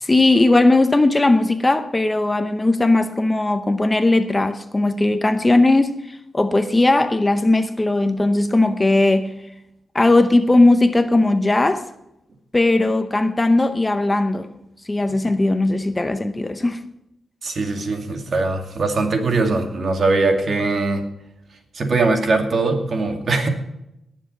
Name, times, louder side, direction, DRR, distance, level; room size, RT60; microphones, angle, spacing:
voice 1, 0.0-9.3 9.9-11.9 12.5-14.6 14.9-16.8, left 2 dB, 20° left, 0.8 m, -18 dB
voice 2, 17.4-21.0 21.7-23.5, right 3 dB, 50° right, 2.3 m, -21 dB
18.5 x 7.4 x 5.5 m
cardioid pair, 105°, 0 cm